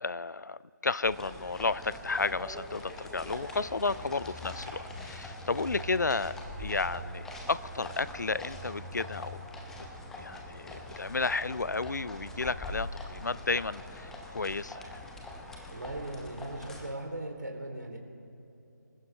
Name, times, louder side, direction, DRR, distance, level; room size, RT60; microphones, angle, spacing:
voice 1, 0.0-9.4 10.2-15.0, left 3 dB, 65° left, 18 dB, 0.5 m, -32 dB
sound 1, 1.0-16.9, left 1 dB, 5° left, 0.7 m, -43 dB
voice 2, 15.7-18.0, right 1 dB, 65° right, 2 dB, 3.1 m, -38 dB
26.5 x 15.0 x 3.3 m, 2.8 s
figure-of-eight pair, 150°, 10 cm